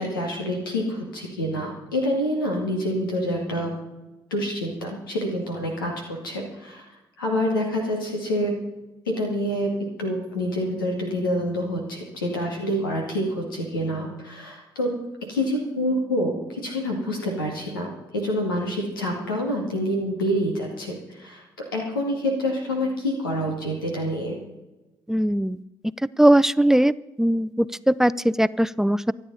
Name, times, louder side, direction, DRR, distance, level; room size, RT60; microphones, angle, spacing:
voice 1, 0.0-3.7 4.3-6.8 7.2-8.5 9.1-9.7 10.0-14.9 15.3-21.4 21.7-24.4, equal, 85° left, 1 dB, 2.2 m, -27 dB
voice 2, 25.1-25.6 26.2-26.9 27.2-29.1, right 1 dB, 5° right, 18 dB, 0.5 m, -19 dB
24.5 x 8.9 x 4.1 m, 1.0 s
figure-of-eight pair, 45°, 11 cm